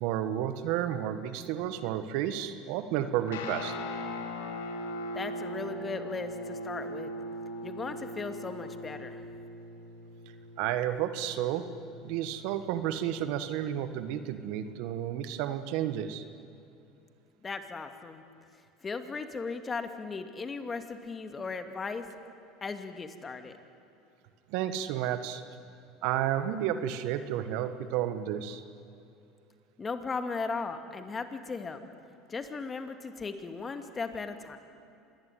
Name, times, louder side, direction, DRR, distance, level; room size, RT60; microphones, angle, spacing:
voice 1, 0.0-3.7 10.6-11.7 12.0-16.2 24.5-25.4 26.0-28.6, right 11 dB, 70° right, 11 dB, 1.6 m, -31 dB
Guitar, 3.3-14.7, left 1 dB, 85° left, 2.8 m, -41 dB
voice 2, 5.1-7.1 7.6-9.2 17.4-18.2 18.8-22.1 22.6-23.5 29.8-31.8 32.3-34.6, left 4 dB, 25° left, 7 dB, 2.5 m, -37 dB
26.5 x 20.5 x 9.4 m, 2.6 s
hypercardioid pair, 90°, 0 cm